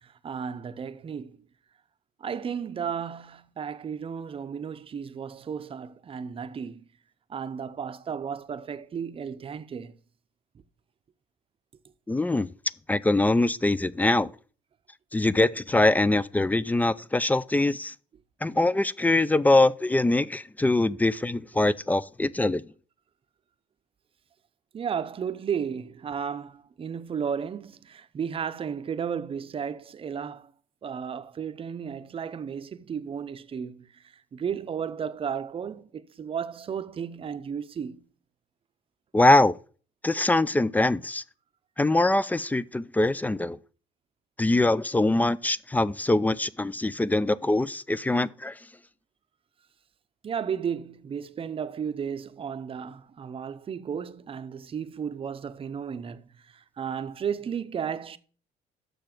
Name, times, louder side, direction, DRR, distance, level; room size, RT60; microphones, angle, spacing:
voice 1, 0.0-1.4 2.2-6.8 7.3-10.0 24.7-30.5 30.8-38.1 50.2-58.2, right 7 dB, 35° right, 0.6 m, -34 dB
voice 2, 12.1-12.5 12.9-14.3 15.1-17.9 18.4-22.6 39.1-39.5 40.0-41.2 41.8-43.6 44.4-48.5, left 2 dB, 10° left, 0.3 m, -23 dB
6.9 x 6.4 x 5.9 m
cardioid pair, 110°, 17 cm